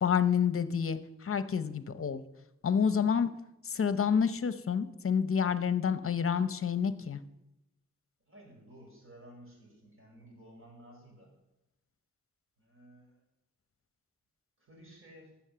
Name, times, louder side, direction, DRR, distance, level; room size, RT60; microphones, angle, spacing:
voice 1, 0.0-2.2 2.6-3.3 3.6-7.2, left 7 dB, 50° left, 12 dB, 0.8 m, -28 dB
voice 2, 8.3-11.3 12.6-13.2 14.6-15.3, right 1 dB, 45° right, -1 dB, 5.9 m, -54 dB
12.5 x 7.3 x 6.9 m, 0.90 s
wide cardioid pair, 90°, 29 cm